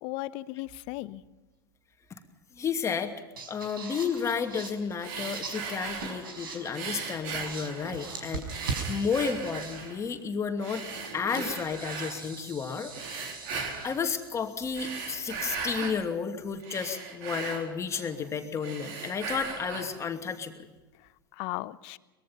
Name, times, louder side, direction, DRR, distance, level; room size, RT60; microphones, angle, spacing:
voice 1, 0.0-1.2 21.0-22.0, left 19 dB, 50° left, 17 dB, 0.9 m, -37 dB
sound 1, 0.7-1.3 3.0-3.1 3.4-7.0 7.3-10.1 11.0-15.8, right 4 dB, 75° right, 5.1 m, -41 dB
voice 2, 2.5-3.1 3.5-10.8 11.1-12.9 13.8-20.7, left 6 dB, 25° left, 6 dB, 2.6 m, -32 dB
sound 2, 5.0-6.3 6.7-8.1 8.5-10.0 10.6-12.2 12.9-14.0 14.6-16.0 16.4-18.3 18.6-20.0, right 5 dB, 55° right, 4.4 m, -38 dB
23.5 x 21.5 x 5.7 m, 1.2 s
hypercardioid pair, 85°, 12 cm